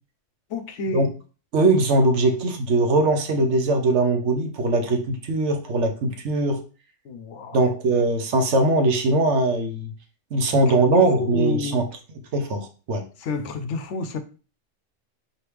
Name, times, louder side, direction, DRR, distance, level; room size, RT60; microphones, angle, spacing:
voice 1, 0.5-1.1 7.1-7.6 10.5-10.7 11.2-11.8 13.2-14.2, left 4 dB, 75° left, 10 dB, 0.9 m, -30 dB
voice 2, 1.5-6.6 7.5-9.9 10.3-11.9 12.3-13.0, right 2 dB, 70° right, 5 dB, 1.1 m, -21 dB
4.6 x 3.1 x 3.3 m, 0.35 s
omnidirectional pair, 1.3 m